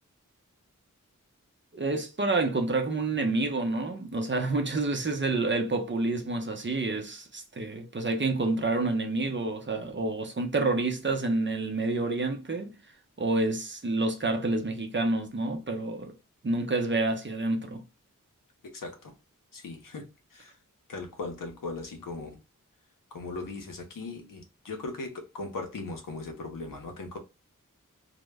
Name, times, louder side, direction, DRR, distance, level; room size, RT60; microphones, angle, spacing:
voice 1, 1.7-12.7 13.2-16.1 16.4-17.8, right 2 dB, 35° right, 0.6 m, -28 dB
voice 2, 18.6-19.1 19.5-20.1 20.3-20.5 20.9-22.4 23.1-27.2, left 3 dB, 75° left, 0.7 m, -38 dB
2.1 x 2.0 x 3.3 m
cardioid pair, 40°, 33 cm